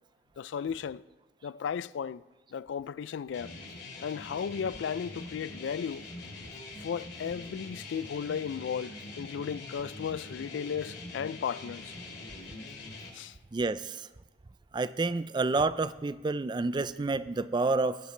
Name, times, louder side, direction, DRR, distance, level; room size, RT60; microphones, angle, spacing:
voice 1, 0.4-1.0 1.4-2.2 2.5-3.5 4.0-6.1 6.8-11.9 13.1-13.4, left 7 dB, 90° left, 0.3 m, -35 dB
sound 1, 3.3-13.1, left 2 dB, 65° left, 2.6 m, -44 dB
voice 2, 13.5-14.1 14.7-18.0, right 3 dB, 25° right, 0.4 m, -29 dB
19.0 x 11.0 x 3.3 m
head